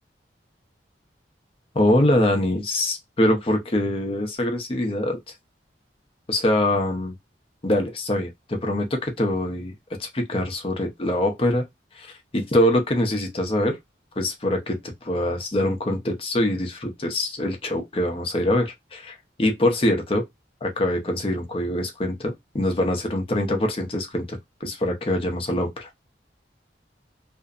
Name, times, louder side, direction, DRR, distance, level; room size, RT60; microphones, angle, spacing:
voice 1, 1.7-5.2 6.3-7.1 7.6-9.7 10.0-11.6 11.9-13.8 14.2-20.2 20.6-25.9, left 1 dB, 30° left, 0.6 m, -24 dB
2.5 x 2.1 x 2.3 m
head